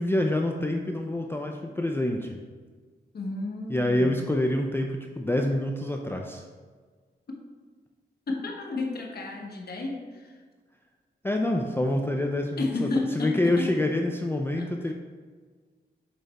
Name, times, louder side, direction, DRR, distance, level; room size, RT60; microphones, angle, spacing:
voice 1, 0.0-2.4 3.7-6.4 11.2-14.9, left 1 dB, 10° left, 2 dB, 0.4 m, -27 dB
voice 2, 3.1-4.2 8.3-10.4 12.6-13.7 14.6-14.7, left 3 dB, 60° left, 1 dB, 1.1 m, -32 dB
7.3 x 3.4 x 4.1 m, 1.5 s
wide cardioid pair, 95°, 18 cm